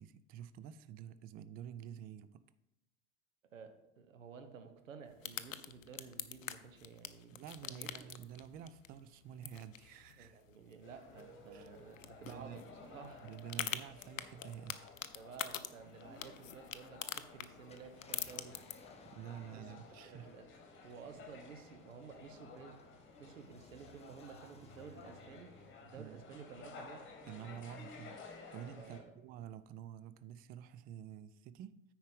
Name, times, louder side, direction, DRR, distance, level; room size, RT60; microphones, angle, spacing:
voice 1, 0.0-2.4 7.3-10.4 11.5-11.7 12.2-12.6 13.2-14.9 19.0-20.3 21.2-21.3 26.0-26.2 27.3-31.9, right 9 dB, 25° right, 0.3 m, -49 dB
voice 2, 3.5-8.1 10.2-13.3 15.1-18.6 19.5-20.5 20.8-22.8 23.2-27.1 28.8-29.2, right 6 dB, 75° right, 1.1 m, -53 dB
sound 1, 5.1-18.7, left 10 dB, 80° left, 0.6 m, -46 dB
sound 2, 10.8-29.0, left 4 dB, 30° left, 1.9 m, -55 dB
Car, 17.7-28.4 28.9-29.0 31.0-31.2, left 3 dB, 15° left, 1.0 m, -65 dB
9.4 x 4.7 x 5.3 m
figure-of-eight pair, 75°, 39 cm